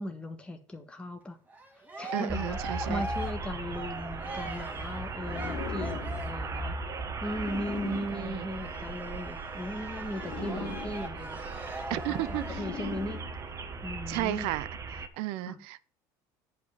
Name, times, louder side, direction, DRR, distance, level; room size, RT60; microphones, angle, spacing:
voice 1, 0.0-1.4 2.0-6.8 7.2-11.5 11.9-13.2 13.8-14.5 15.5-15.6, equal, 10° left, 1.6 m, -38 dB
Cheering, 1.5-6.5 7.2-12.8, right 2 dB, 15° right, 2.4 m, -42 dB
voice 2, 2.1-3.0 7.8-8.5 10.4-10.8 11.9-12.6 14.1-14.7 15.0-15.9, right 16 dB, 75° right, 0.7 m, -34 dB
sound 1, 2.3-15.1, right 3 dB, 30° right, 1.5 m, -38 dB
sound 2, 5.1-9.3 10.0-13.9, left 8 dB, 70° left, 2.5 m, -43 dB
9.1 x 5.2 x 6.7 m
supercardioid pair, 100°, 10 cm